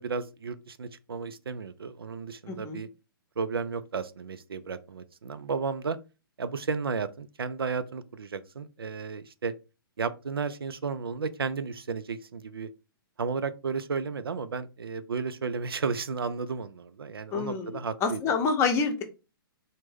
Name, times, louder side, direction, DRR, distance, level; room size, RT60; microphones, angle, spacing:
voice 1, 0.0-2.9 3.4-6.0 6.4-9.5 10.0-12.7 13.2-18.2, right 5 dB, 85° right, 0.4 m, -33 dB
voice 2, 2.5-2.8 17.3-19.0, left 5 dB, 20° left, 0.7 m, -27 dB
3.3 x 2.1 x 3.4 m
figure-of-eight pair, 120°, 12 cm